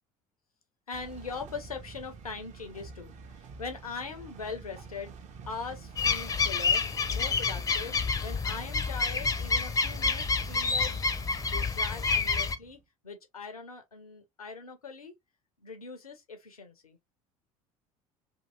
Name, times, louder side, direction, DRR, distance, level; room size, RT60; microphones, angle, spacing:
voice 1, 0.9-5.1 5.5-8.0 8.2-11.1 11.5-15.1 15.6-17.0, left 4 dB, 85° left, 0.6 m, -41 dB
sound 1, 0.9-12.8, right 5 dB, 40° right, 0.7 m, -47 dB
sound 2, 6.0-12.6, left 4 dB, 20° left, 0.5 m, -28 dB
2.8 x 2.7 x 2.5 m
figure-of-eight pair, 60°, 18 cm